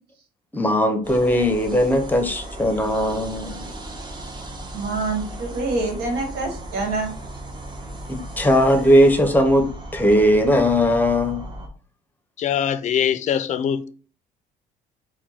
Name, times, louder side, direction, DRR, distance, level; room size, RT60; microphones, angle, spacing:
voice 1, 0.5-3.6 8.1-11.4, equal, 10° left, 0.8 m, -19 dB
sound 1, 1.0-11.7, right 1 dB, 25° right, 0.9 m, -36 dB
voice 2, 4.7-7.1, right 3 dB, 75° right, 1.4 m, -26 dB
voice 3, 12.4-13.9, left 8 dB, 45° left, 0.4 m, -22 dB
4.4 x 2.2 x 4.2 m
cardioid pair, 110°, 17 cm